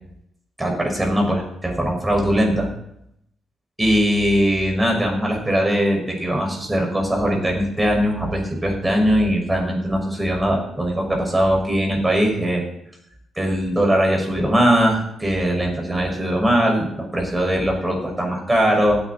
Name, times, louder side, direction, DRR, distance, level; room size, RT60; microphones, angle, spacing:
voice 1, 0.6-2.7 3.8-12.6 13.4-19.0, equal, 15° right, 0 dB, 5.5 m, -20 dB
16.0 x 9.3 x 4.2 m, 0.75 s
supercardioid pair, 60°, 0 cm